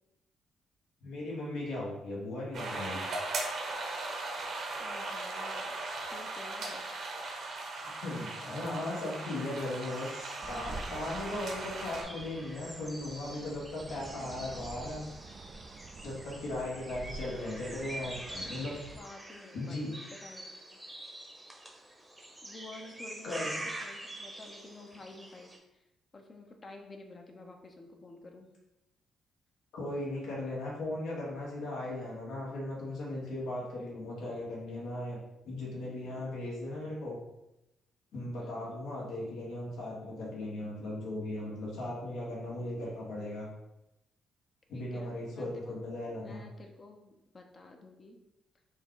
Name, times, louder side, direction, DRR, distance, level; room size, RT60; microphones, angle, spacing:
voice 1, 1.0-3.0 7.8-15.1 16.0-18.8 19.5-19.9 23.2-23.6 29.7-35.2 35.4-37.2 38.1-43.5 44.7-46.4, left 1 dB, 80° left, -4 dB, 1.5 m, -37 dB
sound 1, 2.5-12.0, right 2 dB, 65° right, 1.0 m, -38 dB
voice 2, 4.8-5.7 6.0-6.9 11.7-11.9 17.8-20.8 22.4-25.8 26.1-28.5 38.4-38.8 44.7-45.8 46.2-48.2, left 2 dB, 35° left, 3 dB, 0.7 m, -51 dB
sound 2, 9.8-25.6, right 1 dB, 10° right, 0.8 m, -46 dB
sound 3, 10.4-19.0, right 3 dB, 45° right, 0.3 m, -48 dB
4.3 x 2.3 x 3.8 m, 0.91 s
cardioid pair, 90°, 0 cm